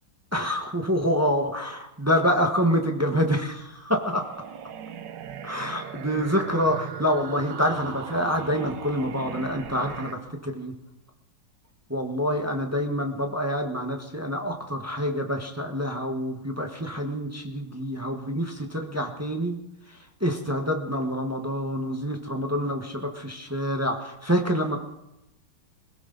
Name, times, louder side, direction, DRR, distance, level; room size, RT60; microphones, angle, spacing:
voice 1, 0.3-4.3 5.4-10.7 11.9-19.6 19.9-24.8, equal, 10° right, 4 dB, 1.0 m, -27 dB
sound 1, 4.2-10.1, right 8 dB, 65° right, 1.4 m, -38 dB
21.0 x 17.0 x 4.0 m, 0.90 s
omnidirectional pair, 2.3 m